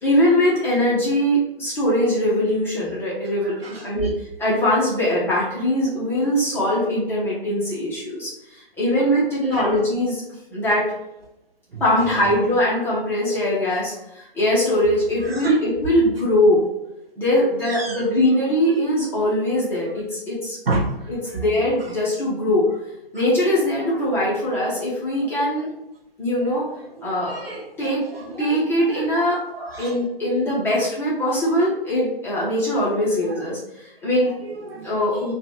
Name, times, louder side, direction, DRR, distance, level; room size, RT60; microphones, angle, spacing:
voice 1, 0.0-4.1 4.4-8.3 8.8-10.2 10.5-10.9 11.8-16.6 17.2-20.6 21.1-22.7 23.1-25.7 26.2-26.7 27.0-27.5 27.8-28.0 28.4-29.4 29.8-34.3 34.8-35.3, left 1 dB, 5° left, -7 dB, 1.0 m, -21 dB
voice 2, 3.4-4.1 9.4-9.7 11.7-11.8 15.2-15.6 17.6-18.0 20.7-20.9 27.0-29.9 30.3-30.4 33.3-33.4 34.4-34.9, right 2 dB, 80° right, -1 dB, 0.8 m, -30 dB
4.7 x 2.5 x 3.0 m, 0.87 s
figure-of-eight pair, 130°, 29 cm